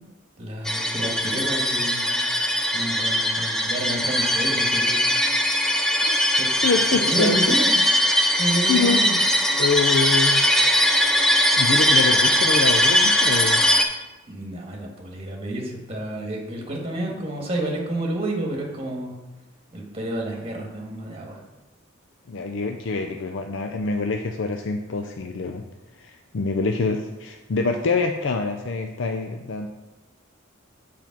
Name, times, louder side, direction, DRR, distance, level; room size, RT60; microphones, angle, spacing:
voice 1, 0.4-2.2 2.7-5.0 6.4-6.5 7.0-7.8 8.4-9.1 14.3-19.1 19.7-21.4, right 1 dB, 30° right, 0 dB, 1.5 m, -30 dB
sound 1, 0.6-13.8, equal, 5° left, 0.6 m, -20 dB
voice 2, 6.6-7.5 8.7-9.0 9.6-10.4 11.0-11.2 11.6-13.6 22.3-25.6 26.0-29.7, left 4 dB, 65° left, 4 dB, 0.5 m, -25 dB
7.1 x 4.5 x 5.8 m, 1.1 s
head